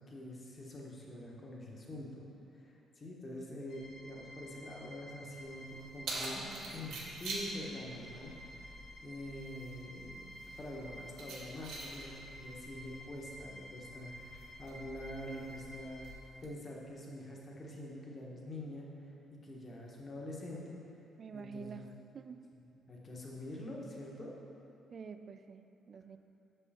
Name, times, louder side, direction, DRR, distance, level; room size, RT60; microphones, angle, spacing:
voice 1, 0.1-2.2 2.6-6.4 6.7-8.7 9.0-16.1 16.4-18.9 19.4-20.8 21.3-21.8 22.7-24.3, left 1 dB, 40° left, -3 dB, 1.2 m, -46 dB
sound 1, 3.7-16.1, equal, 80° left, 0.9 m, -52 dB
Keys jangling, 5.4-16.4, right 2 dB, 85° right, 1.0 m, -47 dB
voice 2, 21.2-22.4 24.9-26.2, right 5 dB, 50° right, 9 dB, 0.3 m, -48 dB
6.1 x 5.5 x 4.3 m, 2.8 s
cardioid pair, 90°, 0 cm